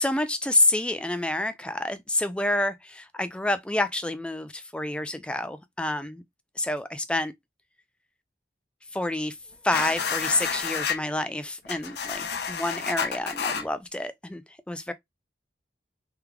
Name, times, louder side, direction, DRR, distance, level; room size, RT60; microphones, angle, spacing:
voice 1, 0.0-6.2 6.6-7.3 8.9-9.4 9.6-14.4 14.7-14.9, left 2 dB, 5° left, 0.3 m, -28 dB
sound 1, 9.7-11.0 11.6-13.6, left 6 dB, 65° left, 0.6 m, -30 dB
3.5 x 3.2 x 2.2 m
head